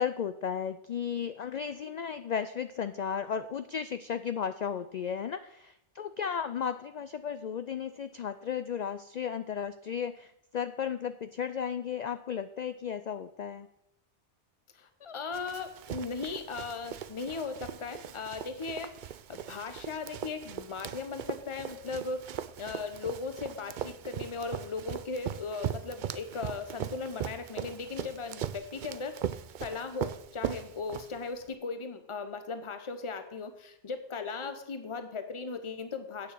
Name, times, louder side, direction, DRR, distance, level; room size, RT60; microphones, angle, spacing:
voice 1, 0.0-13.7, left 7 dB, 65° left, 11 dB, 0.4 m, -34 dB
voice 2, 14.7-18.9 19.3-22.2 22.6-29.2 29.6-36.3, left 4 dB, 30° left, 8 dB, 0.9 m, -37 dB
Run, 15.3-31.5, right 9 dB, 60° right, 0.5 m, -39 dB
8.8 x 6.9 x 7.6 m, 0.80 s
omnidirectional pair, 1.2 m